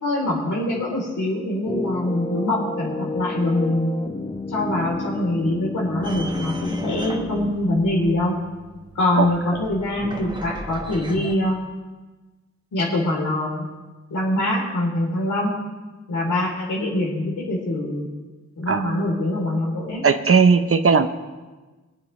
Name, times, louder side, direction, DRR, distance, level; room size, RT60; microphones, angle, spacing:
voice 1, 0.0-4.0 4.5-8.4 9.0-11.6 12.7-13.7 14.1-15.6 16.1-18.1 18.6-20.0, left 1 dB, 90° left, -2 dB, 3.6 m, -24 dB
sound 1, 1.6-7.5, left 2 dB, 15° left, 0.7 m, -30 dB
sound 2, 6.0-11.3, right 1 dB, 15° right, 1.3 m, -37 dB
voice 2, 20.0-21.1, right 5 dB, 50° right, 10 dB, 0.8 m, -17 dB
23.0 x 9.3 x 3.3 m, 1.3 s
wide cardioid pair, 90°, 30 cm